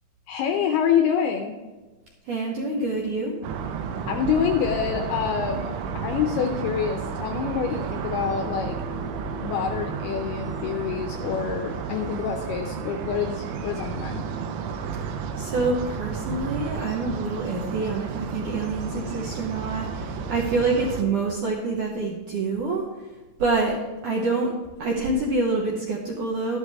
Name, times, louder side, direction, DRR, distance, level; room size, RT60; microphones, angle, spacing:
voice 1, 0.3-1.6 4.1-8.8 9.4-14.2, left 7 dB, 80° left, 4 dB, 2.3 m, -26 dB
voice 2, 2.3-3.4 15.4-22.8 23.4-23.8 24.0-24.5 24.8-26.6, right 3 dB, 70° right, -2 dB, 1.9 m, -26 dB
sound 1, 3.4-21.0, right 6 dB, 90° right, 3.4 m, -32 dB
sound 2, 8.2-21.4, left 3 dB, 15° right, 2.2 m, -44 dB
13.0 x 11.5 x 3.5 m, 1.2 s
omnidirectional pair, 5.3 m